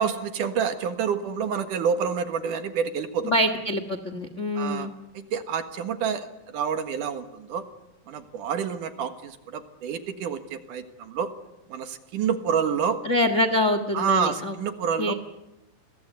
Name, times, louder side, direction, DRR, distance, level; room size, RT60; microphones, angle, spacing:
voice 1, 0.0-3.4 4.6-4.9 5.3-7.6 8.1-11.3 11.7-13.0 13.9-15.1, right 7 dB, 65° right, 8 dB, 3.0 m, -28 dB
voice 2, 3.2-4.9 13.0-14.5 15.0-15.1, left 1 dB, 45° left, 10 dB, 0.9 m, -25 dB
30.0 x 22.5 x 8.1 m, 0.93 s
omnidirectional pair, 4.0 m